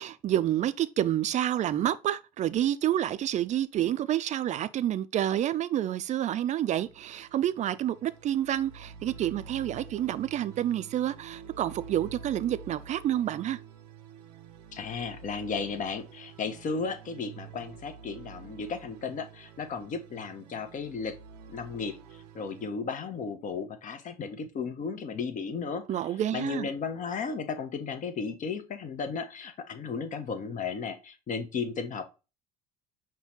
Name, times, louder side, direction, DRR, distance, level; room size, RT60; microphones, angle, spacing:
voice 1, 0.0-13.6 25.9-26.7, right 11 dB, 35° right, 0.4 m, -29 dB
sound 1, 6.7-22.7, right 6 dB, 80° right, 0.6 m, -48 dB
voice 2, 14.7-21.2 21.5-25.9 26.3-32.1, left 5 dB, 40° left, 0.8 m, -35 dB
5.6 x 2.2 x 4.1 m
hypercardioid pair, 70°, 20 cm